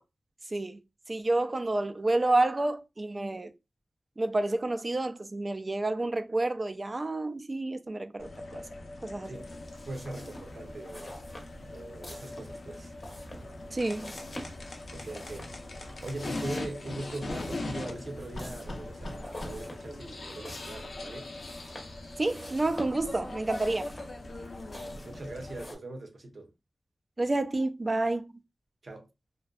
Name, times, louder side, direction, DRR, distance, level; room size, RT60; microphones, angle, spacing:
voice 1, 1.1-3.5 4.2-8.6 9.0-9.4 13.7-14.1 22.2-23.9 27.2-28.3, right 2 dB, 35° right, 0.3 m, -29 dB
sound 1, 8.2-25.7, left 2 dB, 70° left, 0.4 m, -41 dB
sound 2, 9.7-25.8, left 1 dB, 30° left, 0.7 m, -48 dB
voice 2, 9.9-11.2 11.7-13.0 14.9-15.5 15.8-21.3 24.8-26.5 28.8-29.1, right 2 dB, 65° right, 0.7 m, -41 dB
2.6 x 2.2 x 2.3 m
wide cardioid pair, 70°, 0 cm